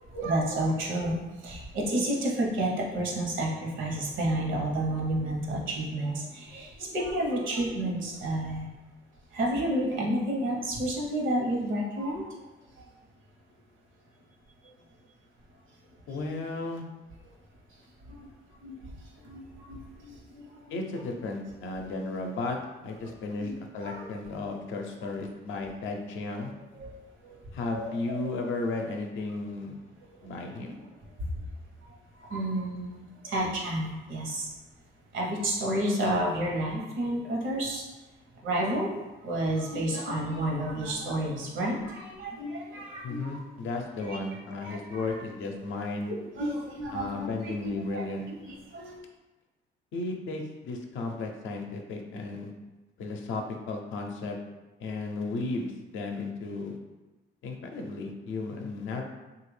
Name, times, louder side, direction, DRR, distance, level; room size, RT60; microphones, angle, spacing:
voice 1, 0.1-8.7 9.3-12.2 12.8-12.9 18.1-18.3 18.6-18.8 19.2-20.8 23.0-23.1 23.4-23.5 23.8-24.0 26.8-27.0 27.2-27.4 27.7-28.3 30.2-30.3 31.9-34.5 35.1-37.9 38.4-38.9 39.2-43.4 44.0-44.2 44.6-45.2 46.1-48.0 48.5-48.9, right 1 dB, 75° right, -2 dB, 0.9 m, -31 dB
voice 2, 16.1-16.8 20.7-22.6 22.8-26.5 27.5-29.7 30.2-30.8 43.0-46.1 46.9-48.3 49.9-52.5 53.0-54.4 54.8-56.8 57.4-59.0, left 3 dB, 75° left, 2 dB, 0.5 m, -34 dB
3.3 x 2.4 x 3.2 m, 1.1 s
cardioid pair, 90°, 20 cm